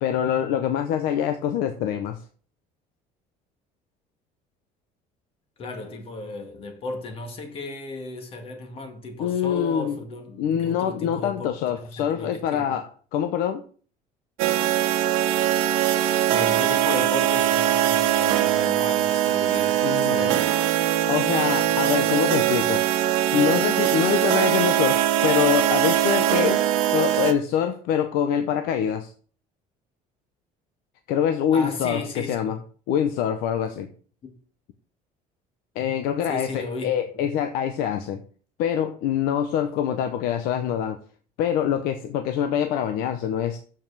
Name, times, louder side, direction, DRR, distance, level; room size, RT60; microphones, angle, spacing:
voice 1, 0.0-2.2 9.2-10.0 10.4-13.6 19.8-20.4 21.1-22.8 23.3-29.1 31.1-32.6 32.9-33.9 35.7-38.2 38.6-41.0 41.4-43.6, left 9 dB, 80° left, 0.9 m, -25 dB
voice 2, 5.6-11.5 12.0-12.8 16.3-20.5 31.5-32.6 34.2-34.4 36.2-37.2, left 2 dB, 40° left, 2.1 m, -35 dB
sound 1, 14.4-27.3, right 11 dB, 85° right, 1.2 m, -21 dB
7.2 x 6.0 x 6.9 m
cardioid pair, 150°, 15 cm